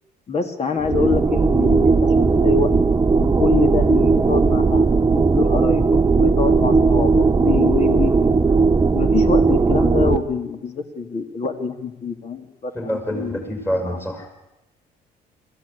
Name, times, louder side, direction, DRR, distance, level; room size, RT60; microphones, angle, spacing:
voice 1, 0.3-2.7 3.2-8.1 8.9-13.4 13.8-14.0, left 5 dB, 40° left, 7 dB, 2.5 m, -25 dB
sound 1, 0.8-10.2, right 4 dB, 20° right, 0.8 m, -17 dB
voice 2, 12.7-14.3, equal, 15° left, 5 dB, 5.4 m, -26 dB
22.0 x 14.5 x 8.5 m, 0.95 s
cardioid pair, 110°, 17 cm